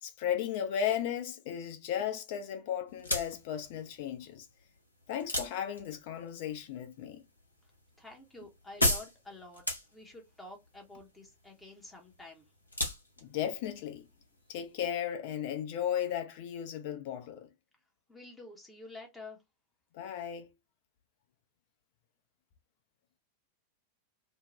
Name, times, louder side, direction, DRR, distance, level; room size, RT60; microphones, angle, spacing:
voice 1, 0.0-4.5 5.1-7.2 13.2-14.1 14.5-17.5 19.9-20.5, left 9 dB, 50° left, 0.6 m, -35 dB
sound 1, 2.9-14.9, left 1 dB, 85° left, 0.8 m, -38 dB
voice 2, 8.0-9.6 9.9-12.5 18.1-19.4, left 2 dB, 10° left, 0.7 m, -49 dB
2.7 x 2.2 x 3.0 m
figure-of-eight pair, 90°, 0 cm